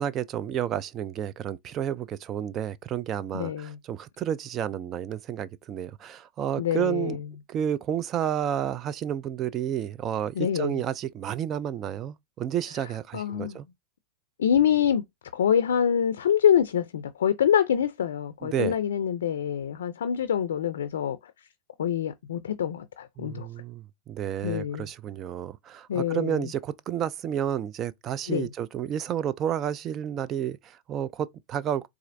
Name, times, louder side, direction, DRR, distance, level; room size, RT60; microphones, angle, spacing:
voice 1, 0.0-7.2 7.5-13.7 18.4-18.7 23.2-31.9, right 9 dB, 35° right, 0.3 m, -31 dB
voice 2, 3.3-3.8 6.6-7.3 10.4-10.8 13.1-13.6 14.4-15.0 15.3-21.3 21.8-23.5 24.4-24.9 25.9-26.5 28.3-28.5, left 9 dB, 80° left, 0.4 m, -25 dB
4.2 x 2.4 x 2.6 m
hypercardioid pair, 105°, 0 cm